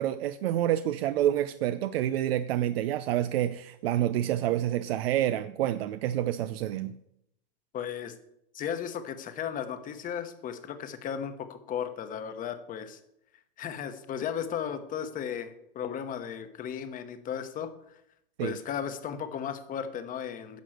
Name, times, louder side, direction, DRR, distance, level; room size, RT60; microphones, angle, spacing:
voice 1, 0.0-6.9 18.4-18.6, right 12 dB, 80° right, 11 dB, 0.6 m, -28 dB
voice 2, 7.7-8.2 8.5-13.0 13.6-18.0 18.4-20.6, left 8 dB, 25° left, 9 dB, 1.1 m, -35 dB
10.5 x 6.0 x 6.4 m, 0.78 s
supercardioid pair, 130°, 30 cm